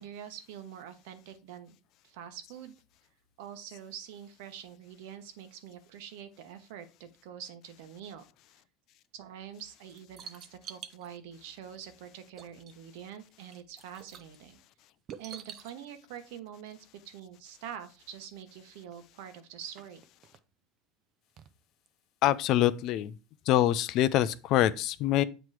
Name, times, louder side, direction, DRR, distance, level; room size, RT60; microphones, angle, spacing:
voice 1, 0.0-1.8 2.0-2.7 3.4-8.2 9.1-14.6 15.2-16.8 17.0-20.0, right 9 dB, 75° right, 1.0 m, -45 dB
sound 1, 9.6-11.1 12.0-12.1 12.3-13.0 13.3-14.4 15.1-15.7 17.7-17.8 18.1-18.2 18.8-18.9 19.5-20.4 21.4-21.5 21.9-22.0, right 7 dB, 35° right, 0.5 m, -47 dB
voice 2, 22.2-23.1 23.5-25.2, left 13 dB, 50° left, 0.4 m, -25 dB
7.7 x 3.0 x 4.7 m
cardioid pair, 150°, 0 cm